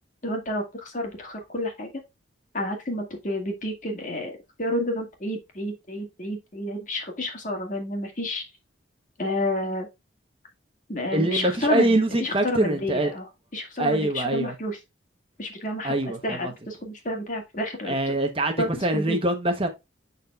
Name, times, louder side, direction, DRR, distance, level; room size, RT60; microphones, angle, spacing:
voice 1, 0.2-1.9 2.5-4.3 4.6-8.4 9.2-9.9 10.9-14.8 15.4-15.9 16.2-17.9 18.6-19.2, left 1 dB, 40° left, 2.0 m, -30 dB
voice 2, 11.1-13.1 13.8-14.5 15.8-16.5 17.9-19.7, right 1 dB, 30° right, 0.9 m, -24 dB
11.0 x 4.1 x 2.4 m
head